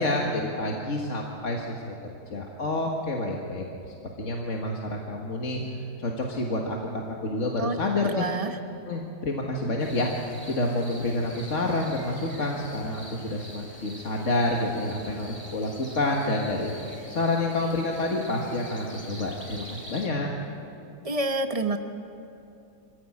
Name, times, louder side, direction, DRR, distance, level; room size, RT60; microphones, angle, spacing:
voice 1, 0.0-1.9 2.3-5.6 6.0-8.3 8.9-10.1 10.4-16.7 17.1-20.3, left 2 dB, 45° left, 0 dB, 1.9 m, -28 dB
voice 2, 8.0-8.6 21.0-21.8, right 2 dB, 25° right, 6 dB, 1.0 m, -28 dB
sound 1, 9.8-20.1, equal, 20° left, 3.3 m, -45 dB
25.5 x 16.0 x 8.7 m, 2.7 s
omnidirectional pair, 1.9 m